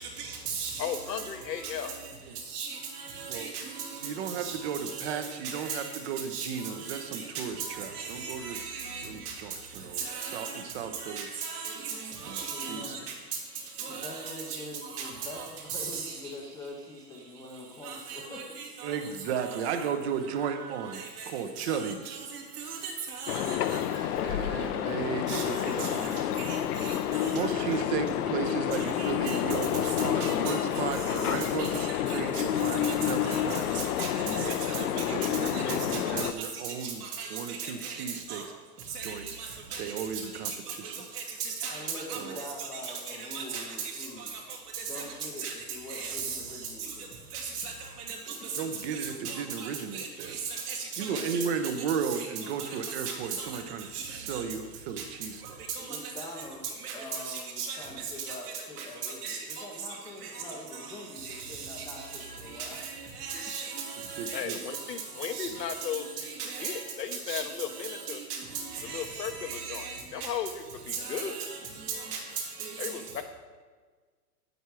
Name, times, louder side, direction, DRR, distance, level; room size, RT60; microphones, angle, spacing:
voice 1, 0.2-1.0 2.5-3.8 4.4-4.5 4.9-5.2 5.4-5.8 6.3-6.5 6.8-7.7 7.9-9.0 10.0-10.6 11.0-13.0 13.8-14.6 14.9-15.4 15.7-16.2 17.8-19.0 19.4-19.5 20.5-20.6 20.9-21.3 21.6-23.8 25.3-25.4 25.8-26.1 26.4-27.5 29.0-29.4 30.0-30.9 31.6-31.7 32.1-32.4 32.8-33.4 33.7-34.1 34.4-35.6 35.9-36.3 36.6-37.9 38.3-38.4 38.9-39.1 39.7-39.8 40.4-40.5 41.2-42.2 42.6-43.9 44.7-45.0 45.4-45.5 45.9-46.4 47.3-47.7 48.3-48.6 49.2-50.4 50.7-51.4 52.1-52.3 52.6-53.5 53.9-54.4 55.7-55.8 56.8-57.0 57.2-57.8 58.3-58.4 58.8-58.9 59.2-59.6 61.2-61.9 62.6-62.9 63.2-64.4 65.3-65.5 66.2-66.8 67.3-67.5 67.8-68.4 68.7-70.0 70.9-71.6 71.9-72.2 72.6-72.7, right 6 dB, 70° right, -2 dB, 2.9 m, -37 dB
voice 2, 0.8-1.9 64.3-66.3 66.6-68.2 68.8-69.9 70.1-71.4 72.8-73.2, left 8 dB, 85° left, 6 dB, 1.3 m, -36 dB
voice 3, 4.0-8.6 9.0-10.0 10.3-11.3 12.3-12.8 18.8-22.2 24.2-26.3 27.2-33.6 34.2-37.0 37.3-38.4 39.0-39.3 39.8-40.5 40.8-41.1 42.1-42.4 48.5-50.3 51.0-55.6 64.2-64.6, right 7 dB, 40° right, 8 dB, 0.9 m, -35 dB
voice 4, 12.5-13.0 13.9-18.9 41.6-44.3 44.8-47.8 51.0-51.4 55.8-62.8, left 2 dB, 10° left, -2 dB, 0.6 m, -44 dB
sound 1, 23.3-36.3, left 11 dB, 70° left, 0.7 m, -29 dB
9.1 x 8.1 x 4.8 m, 1.4 s
hypercardioid pair, 145°, 48 cm